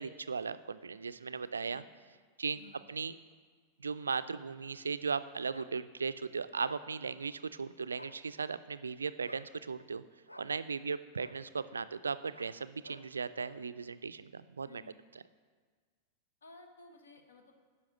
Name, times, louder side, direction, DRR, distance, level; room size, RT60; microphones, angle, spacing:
voice 1, 0.0-1.8 2.4-2.6 2.9-3.2 3.8-10.0 10.4-14.8, right 5 dB, 75° right, 14 dB, 0.3 m, -37 dB
voice 2, 1.4-1.8 2.5-2.8 14.6-15.0 16.4-17.5, left 3 dB, 70° left, 5 dB, 1.0 m, -56 dB
sound 1, 5.5-5.7 6.6-6.9 7.9-8.2 9.2-9.5 10.3-10.5 11.2-11.4 12.3-12.6 12.8-13.1 13.3-13.6, left 1 dB, 85° left, 0.4 m, -51 dB
9.5 x 5.7 x 6.0 m, 1.5 s
figure-of-eight pair, 90°, 0 cm